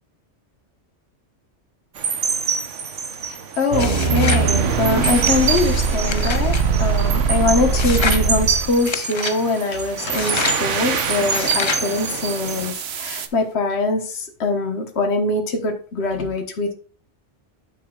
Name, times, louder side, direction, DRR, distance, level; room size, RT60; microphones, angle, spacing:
sound 1, 2.0-12.7, right 6 dB, 85° right, 1.3 m, -26 dB
voice 1, 3.2-16.7, left 3 dB, 65° left, 3 dB, 1.6 m, -23 dB
sound 2, 3.7-8.9 10.7-13.3, right 5 dB, 65° right, 1.0 m, -23 dB
sound 3, 3.8-4.5 5.0-6.6 7.8-8.3 8.9-9.4 10.1-10.6 11.3-11.9, left 5 dB, 35° left, 0.5 m, -27 dB
9.6 x 7.2 x 2.4 m, 0.41 s
omnidirectional pair, 1.2 m